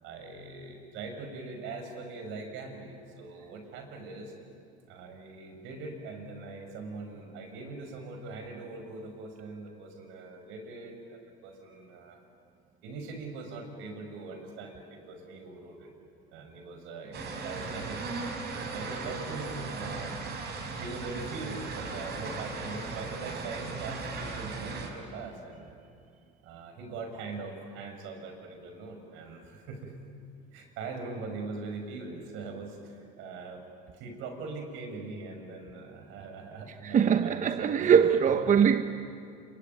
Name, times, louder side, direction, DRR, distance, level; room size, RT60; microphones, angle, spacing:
voice 1, 0.0-4.3 4.9-12.2 12.8-16.0 16.3-20.2 20.7-25.9 26.4-29.9 30.5-33.6 33.9-38.0 38.4-38.6, right 3 dB, 75° right, 5.9 m, -41 dB
sound 1, 17.1-24.9, right 4 dB, 55° right, 5.9 m, -37 dB
voice 2, 36.8-38.8, right 7 dB, 40° right, 1.0 m, -22 dB
27.0 x 23.5 x 9.5 m
supercardioid pair, 100°, 20 cm